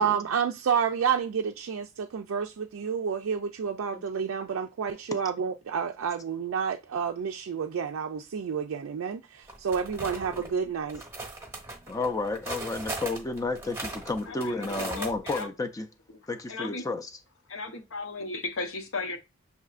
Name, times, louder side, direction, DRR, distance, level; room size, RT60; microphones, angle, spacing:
voice 1, 0.0-11.0, right 7 dB, 75° right, 0.4 m, -29 dB
sound 1, 9.5-10.5 10.9-15.4, right 2 dB, 10° right, 0.9 m, -38 dB
voice 2, 11.9-15.9 16.3-17.1, left 3 dB, 15° left, 0.4 m, -32 dB
voice 3, 14.3-15.5 16.5-16.8 17.5-19.2, left 3 dB, 65° left, 0.8 m, -35 dB
6.5 x 2.7 x 2.4 m
head